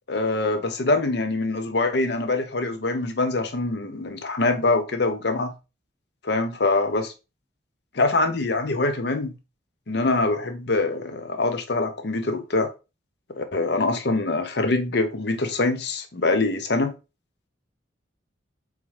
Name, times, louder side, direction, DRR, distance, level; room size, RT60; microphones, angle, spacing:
voice 1, 0.1-5.5 6.2-7.1 7.9-9.4 9.9-12.7 13.4-16.9, left 2 dB, 55° left, 0.6 m, -24 dB
4.0 x 3.6 x 3.2 m
head